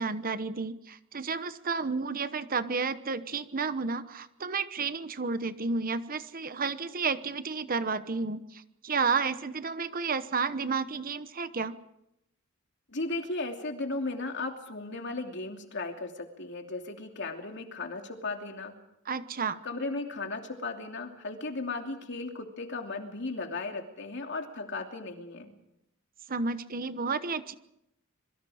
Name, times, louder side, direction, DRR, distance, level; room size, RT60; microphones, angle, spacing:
voice 1, 0.0-11.8 19.0-19.6 26.3-27.5, right 4 dB, 45° right, 12 dB, 1.0 m, -31 dB
voice 2, 12.9-18.7 19.6-25.5, left 3 dB, 60° left, 4 dB, 2.8 m, -36 dB
26.5 x 23.0 x 5.0 m, 0.84 s
head